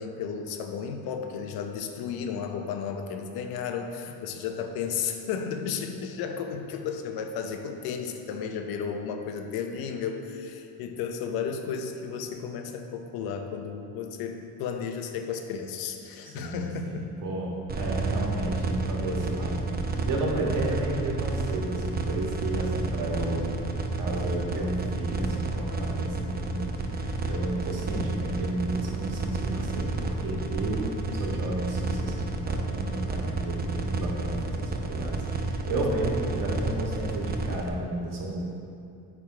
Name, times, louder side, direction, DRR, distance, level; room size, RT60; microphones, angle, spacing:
voice 1, 0.0-17.1, left 6 dB, 80° left, 5 dB, 0.8 m, -33 dB
voice 2, 16.2-19.6 20.0-23.5 23.9-30.9 31.1-38.4, right 2 dB, 60° right, -3 dB, 1.7 m, -32 dB
sound 1, 17.7-37.7, right 3 dB, 25° right, 0.6 m, -30 dB
8.6 x 3.7 x 4.8 m, 2.6 s
cardioid pair, 100°, 36 cm